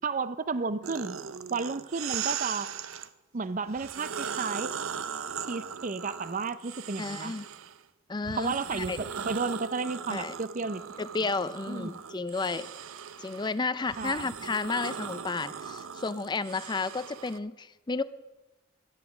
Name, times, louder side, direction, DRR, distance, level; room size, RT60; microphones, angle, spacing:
voice 1, 0.0-1.2 1.5-2.7 3.3-4.7 5.5-7.3 8.3-10.8 11.7-11.9 14.0-14.3, right 4 dB, 40° right, 15 dB, 0.6 m, -32 dB
sound 1, 0.8-3.1 3.7-7.8 8.2-17.4, right 7 dB, 85° right, 0.6 m, -39 dB
voice 2, 7.0-7.5 8.1-9.0 10.1-10.3 11.0-12.7 13.2-18.0, left 4 dB, 20° left, 14 dB, 0.4 m, -32 dB
13.0 x 11.0 x 6.2 m, 1.1 s
head